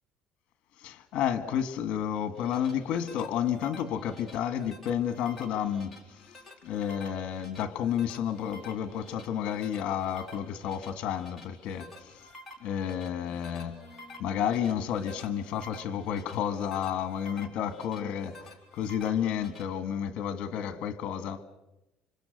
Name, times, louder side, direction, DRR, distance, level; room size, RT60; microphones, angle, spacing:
voice 1, 0.8-5.9 6.6-12.3 12.6-13.9 14.2-21.4, left 9 dB, 50° left, 1.9 m, -31 dB
sound 1, 2.2-19.6, left 1 dB, ahead, 3.9 m, -51 dB
sound 2, 2.3-16.0, left 1 dB, 20° right, 6.6 m, -59 dB
30.0 x 26.0 x 6.6 m
cardioid pair, 180°, 2 cm